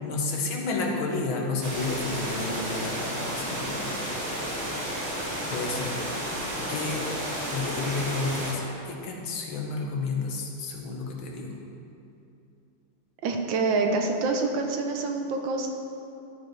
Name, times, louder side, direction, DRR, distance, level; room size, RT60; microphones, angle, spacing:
voice 1, 0.0-3.9 4.2-4.6 5.5-6.0 6.7-7.1 7.5-11.6, left 3 dB, 80° left, 0 dB, 1.8 m, -31 dB
sound 1, 1.6-8.5, equal, 35° right, 1.9 m, -32 dB
voice 2, 13.2-15.7, right 3 dB, 75° right, 3 dB, 1.4 m, -26 dB
12.5 x 5.1 x 4.5 m, 2.7 s
omnidirectional pair, 2.2 m